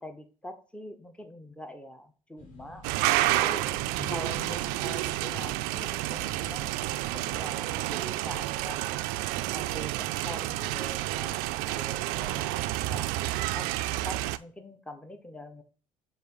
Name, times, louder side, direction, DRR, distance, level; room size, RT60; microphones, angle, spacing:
voice 1, 0.0-3.7 4.1-6.7 7.1-8.8 9.5-11.4 11.7-13.1 13.5-15.6, left 1 dB, 5° left, 8 dB, 0.9 m, -44 dB
sound 1, 2.4-7.4, left 2 dB, 50° left, 2.0 m, -47 dB
sound 2, 2.8-14.4, right 17 dB, 60° right, 0.4 m, -30 dB
7.7 x 2.6 x 5.5 m, 0.38 s
figure-of-eight pair, 55°, 18 cm